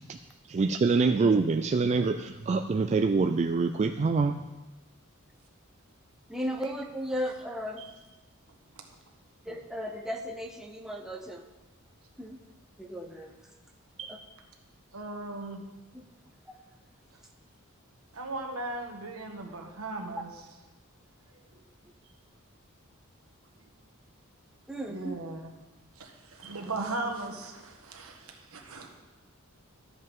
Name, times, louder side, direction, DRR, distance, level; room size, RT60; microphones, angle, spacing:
voice 1, 0.5-4.4, right 4 dB, 30° right, 6 dB, 0.3 m, -25 dB
voice 2, 6.3-7.8 9.5-11.4 12.2-12.4 12.8-13.3 14.1-14.2 15.9-16.0 16.5-16.6 24.7-25.1, equal, ahead, 1 dB, 0.7 m, -35 dB
voice 3, 14.9-15.6 18.1-20.3 21.5-21.6 23.6-23.7 24.9-25.5 26.0-28.9, right 2 dB, 85° right, 2 dB, 1.4 m, -38 dB
13.0 x 7.9 x 3.6 m, 1.1 s
head